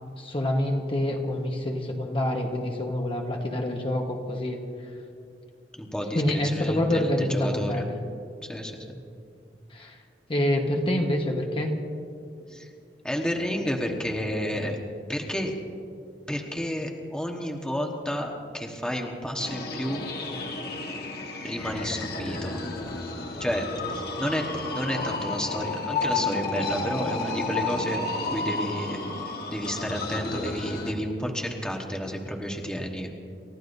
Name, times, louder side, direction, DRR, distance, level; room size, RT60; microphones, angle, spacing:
voice 1, 0.2-4.9 6.1-8.0 9.7-10.0 10.3-11.7, left 1 dB, 30° left, 1 dB, 1.3 m, -27 dB
voice 2, 5.8-6.2 6.5-7.8 8.5-8.7 12.5-12.7 13.0-14.8 15.1-15.5 16.3-20.1 21.4-22.6 23.4-23.6 23.9-28.0 28.3-29.0 29.5-33.1, equal, 5° left, 0 dB, 1.3 m, -31 dB
sound 1, 19.4-30.9, left 3 dB, 60° left, 1.8 m, -32 dB
29.0 x 14.0 x 2.7 m, 2.5 s
head